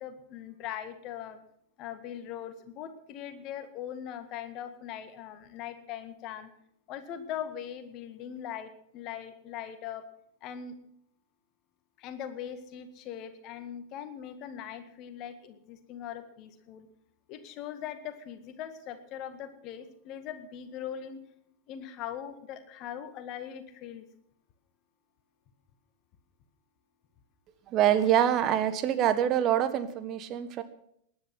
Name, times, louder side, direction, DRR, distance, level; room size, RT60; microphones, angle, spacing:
voice 1, 0.0-1.4 1.8-6.5 6.9-10.1 10.4-10.8 12.0-16.9 17.3-21.2 21.7-24.1, left 9 dB, 40° left, 10 dB, 1.9 m, -40 dB
voice 2, 27.7-30.6, right 10 dB, 35° right, 11 dB, 1.5 m, -25 dB
19.0 x 10.5 x 6.1 m, 0.71 s
figure-of-eight pair, 90°, 0 cm